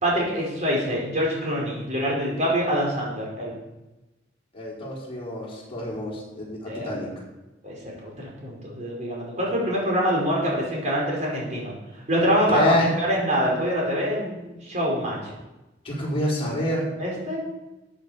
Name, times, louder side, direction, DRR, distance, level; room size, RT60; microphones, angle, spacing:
voice 1, 0.0-3.6 6.7-6.9 7.6-11.7 12.1-15.3 17.0-17.4, equal, 40° right, -3 dB, 4.9 m, -25 dB
voice 2, 4.5-7.1 12.5-12.9 15.8-16.9, left 1 dB, 30° left, -4 dB, 4.4 m, -27 dB
13.5 x 8.6 x 5.1 m, 1.0 s
head